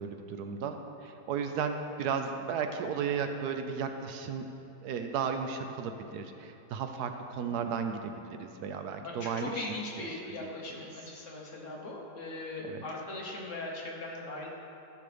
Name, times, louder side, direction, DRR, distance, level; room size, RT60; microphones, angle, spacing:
voice 1, 0.0-4.5 4.8-9.7 10.0-10.5 10.8-10.9 12.6-12.8, right 6 dB, 75° right, 6 dB, 1.1 m, -35 dB
voice 2, 9.0-14.5, left 2 dB, 50° left, -2 dB, 1.3 m, -39 dB
13.5 x 6.2 x 3.3 m, 2.9 s
omnidirectional pair, 1.8 m